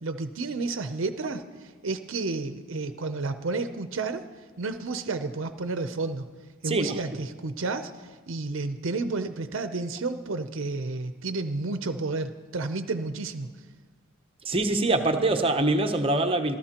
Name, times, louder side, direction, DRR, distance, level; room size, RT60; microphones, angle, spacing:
voice 1, 0.0-4.2 4.6-6.2 6.6-13.5, right 3 dB, 65° right, 9 dB, 0.6 m, -31 dB
voice 2, 6.6-7.0 14.4-16.5, right 2 dB, 25° right, 5 dB, 0.7 m, -24 dB
26.5 x 14.0 x 2.9 m, 1.4 s
head